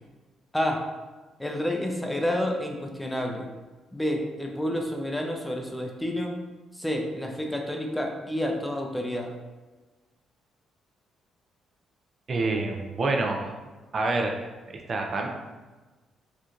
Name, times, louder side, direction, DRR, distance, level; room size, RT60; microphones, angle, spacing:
voice 1, 1.4-3.5 3.9-6.3 6.7-9.3, left 1 dB, 5° left, 2 dB, 0.5 m, -29 dB
voice 2, 12.3-13.5 13.9-15.3, right 3 dB, 45° right, 2 dB, 0.4 m, -27 dB
4.3 x 2.4 x 2.5 m, 1.2 s
cardioid pair, 90°, 0 cm